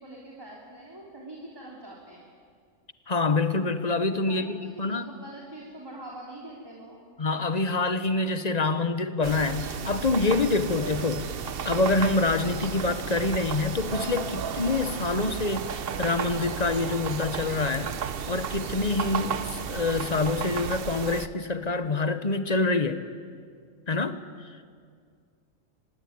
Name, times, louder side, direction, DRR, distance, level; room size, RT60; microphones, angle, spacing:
voice 1, 0.0-2.2 4.3-7.0, right 1 dB, 20° right, -3 dB, 3.2 m, -44 dB
voice 2, 3.1-5.1 7.2-11.3 11.6-17.9 18.3-23.0 23.9-24.6, left 3 dB, 35° left, 11 dB, 1.1 m, -26 dB
sound 1, 9.2-21.3, right 7 dB, 55° right, 1.0 m, -33 dB
25.0 x 20.0 x 9.5 m, 2.1 s
omnidirectional pair, 1.3 m